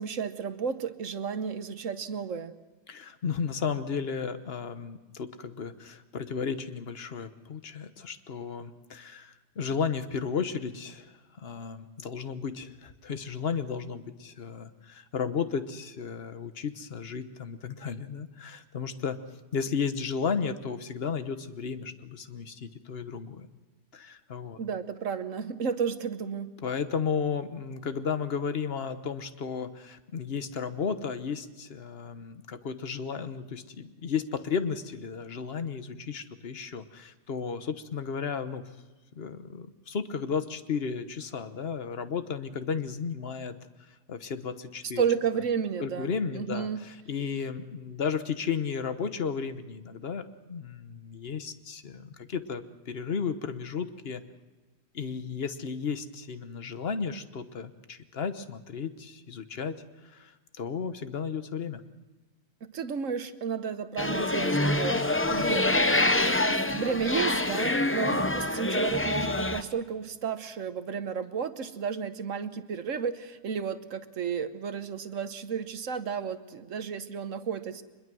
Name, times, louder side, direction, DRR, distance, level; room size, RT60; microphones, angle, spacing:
voice 1, 0.0-2.5 24.6-26.5 45.0-46.8 62.7-65.0 65.3-65.7 66.4-77.8, right 6 dB, 55° right, 10 dB, 1.3 m, -32 dB
voice 2, 2.9-11.1 11.4-19.2 19.5-23.5 23.9-24.6 26.6-38.6 39.2-43.6 44.1-45.0 45.8-54.2 54.9-59.8 60.1-60.3 60.6-61.8, left 6 dB, 45° left, 10 dB, 1.2 m, -34 dB
sound 1, 64.0-69.6, left 2 dB, 15° left, 0.4 m, -26 dB
24.0 x 21.5 x 6.2 m, 1.2 s
omnidirectional pair, 1.6 m